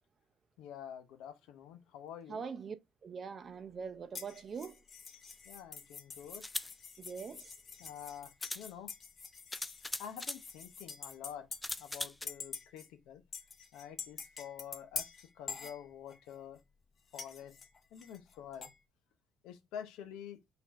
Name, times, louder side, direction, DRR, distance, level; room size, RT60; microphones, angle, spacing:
voice 1, 0.6-2.4 5.5-6.4 7.8-8.9 10.0-11.5 11.8-13.2 13.7-15.1 15.4-16.6 17.1-17.6 17.9-18.7 19.4-20.4, left 9 dB, 85° left, 0.7 m, -48 dB
voice 2, 2.3-2.8 3.0-4.7 7.0-7.5, right 6 dB, 40° right, 0.5 m, -42 dB
sound 1, 4.1-12.0 12.3-12.9 13.3-16.3 17.1-18.8, left 5 dB, 40° left, 0.7 m, -46 dB
sound 2, 5.3-5.4 6.3-6.7 7.9-8.0 8.4-8.7 9.5-10.4 11.6-12.3, left 1 dB, 10° left, 0.3 m, -40 dB
4.2 x 2.6 x 4.1 m
cardioid pair, 110°, 0 cm